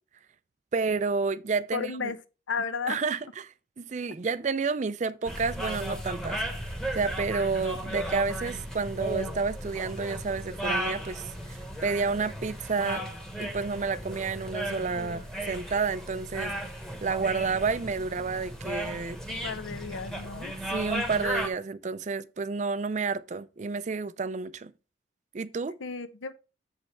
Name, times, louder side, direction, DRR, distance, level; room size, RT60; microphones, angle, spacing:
voice 1, 0.7-2.1 2.9-3.5 3.8-6.4 6.9-13.0 13.4-16.5 17.0-19.2 20.7-24.7 25.3-25.8, right 4 dB, 40° right, 0.4 m, -30 dB
voice 2, 1.7-2.2 2.5-3.0 14.9-15.2 19.3-20.5 25.8-26.3, left 5 dB, 85° left, 0.8 m, -34 dB
sound 1, 5.3-21.5, equal, 5° left, 1.0 m, -35 dB
7.4 x 5.4 x 4.4 m
head